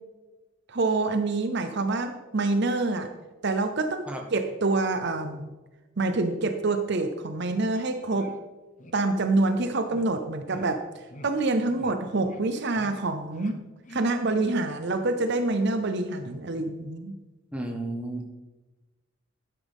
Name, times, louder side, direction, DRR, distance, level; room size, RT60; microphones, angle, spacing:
voice 1, 0.7-3.1 3.4-5.5 6.0-8.3 8.9-10.8 11.2-13.6 13.9-17.1, right 2 dB, 55° right, 8 dB, 0.7 m, -26 dB
sound 1, 7.7-7.8 8.1-8.4 8.8-8.9 9.3-9.4 9.9-10.1 10.5-10.7 11.1-11.3 11.7-11.9 12.2-12.4 12.7-13.0 13.3-13.5 13.8-14.0, left 1 dB, 35° left, 0.9 m, -46 dB
voice 2, 17.5-18.3, right 1 dB, 5° right, 1 dB, 1.3 m, -33 dB
12.0 x 9.9 x 3.6 m, 1.2 s
head